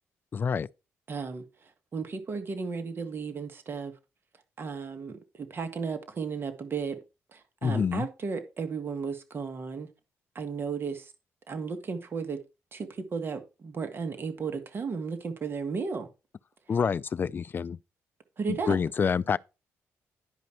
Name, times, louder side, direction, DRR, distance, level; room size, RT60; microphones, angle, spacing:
voice 1, 0.3-0.7 7.6-8.1 16.7-17.8 18.5-19.4, left 6 dB, 40° left, 0.4 m, -27 dB
voice 2, 1.1-1.4 1.9-3.9 4.6-7.0 7.3-9.9 10.4-11.1 11.5-12.4 12.7-16.1 18.4-18.8, right 5 dB, 45° right, 1.7 m, -34 dB
10.5 x 5.2 x 4.5 m
cardioid pair, 95°, 5 cm